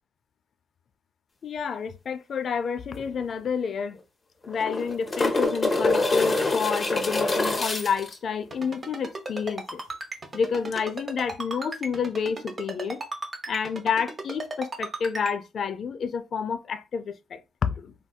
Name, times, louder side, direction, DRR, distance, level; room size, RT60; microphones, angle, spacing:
voice 1, 1.4-4.0 4.5-9.8 10.3-13.0 13.5-17.9, left 6 dB, 55° left, 0.4 m, -29 dB
sound 1, 3.0-3.1 3.3-3.4 4.4-8.2 10.7-10.8, left 2 dB, 30° left, 0.7 m, -25 dB
Ringtone, 8.5-15.3, right 2 dB, 35° right, 0.9 m, -35 dB
3.5 x 2.6 x 2.2 m
cardioid pair, 90°, 0 cm